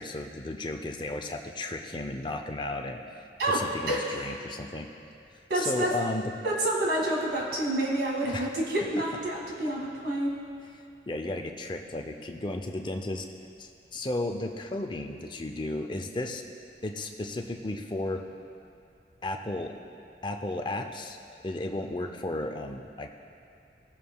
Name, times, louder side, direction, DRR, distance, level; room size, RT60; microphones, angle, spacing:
voice 1, 0.0-3.0 3.5-4.9 5.5-6.2 8.3-8.5 11.1-13.2 13.6-16.4 16.8-18.2 19.2-19.7 20.2-21.2 21.4-23.1, left 2 dB, 25° left, 4 dB, 0.5 m, -34 dB
voice 2, 5.5-5.9 6.4-10.3, right 1 dB, 65° right, -3 dB, 2.0 m, -28 dB
19.0 x 7.4 x 2.3 m, 2.5 s
head